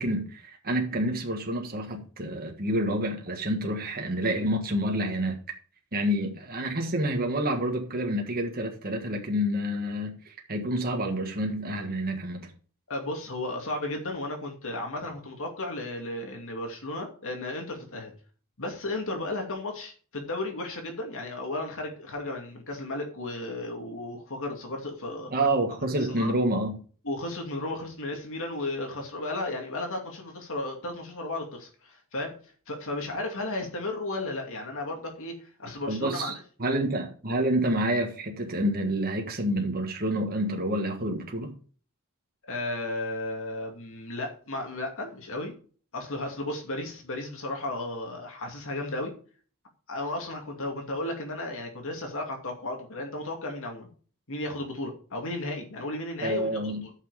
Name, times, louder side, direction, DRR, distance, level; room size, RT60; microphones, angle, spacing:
voice 1, 0.0-5.4 5.9-12.5 25.3-26.8 35.9-36.3 36.6-41.5 56.2-56.8, right 1 dB, 45° right, 1.6 m, -28 dB
voice 2, 12.9-18.1 18.6-25.3 26.1-26.3 27.0-32.4 32.7-36.4 42.5-45.5 45.9-49.1 49.9-53.9 54.3-56.9, left 2 dB, 65° left, 2.5 m, -34 dB
11.0 x 6.1 x 5.0 m
head